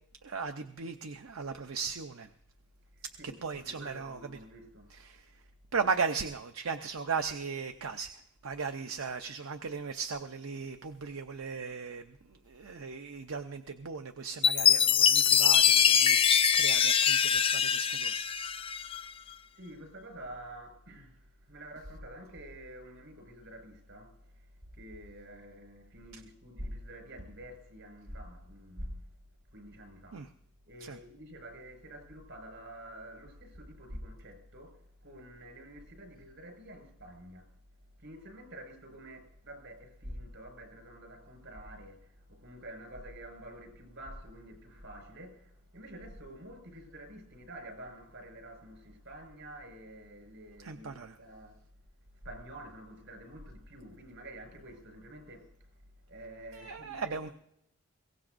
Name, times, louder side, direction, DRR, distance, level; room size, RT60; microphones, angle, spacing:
voice 1, 0.2-2.3 3.0-4.2 4.9-5.4 5.7-18.2 26.1-26.2 30.1-30.3 30.8-31.0 50.6-51.2 56.5-57.3, right 5 dB, 85° right, 0.7 m, -37 dB
voice 2, 2.9-3.4 3.6-4.9 19.5-29.1 29.5-30.3 30.7-37.6 38.0-51.6 52.1-57.3, right 1 dB, 65° right, 5.4 m, -48 dB
Chime, 14.4-19.0, left 8 dB, 25° left, 0.4 m, -24 dB
22.5 x 17.5 x 2.6 m
head